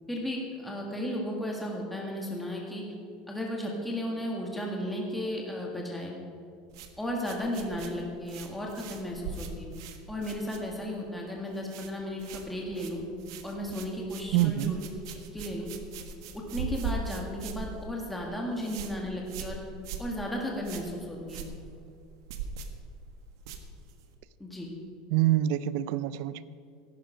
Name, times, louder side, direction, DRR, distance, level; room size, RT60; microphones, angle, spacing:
voice 1, 0.1-2.8 3.3-6.1 7.0-9.7 10.1-13.0 13.4-14.8 15.3-15.7 16.3-19.6 20.0-21.4 24.4-24.7, equal, 5° left, -2 dB, 1.7 m, -34 dB
sound 1, 6.7-11.1 11.3-11.9 12.2-24.2, right 5 dB, 85° right, 1.4 m, -41 dB
voice 2, 14.3-14.8 25.1-26.4, right 14 dB, 60° right, 17 dB, 0.5 m, -26 dB
14.0 x 11.5 x 5.0 m, 2.4 s
supercardioid pair, 165°, 2 cm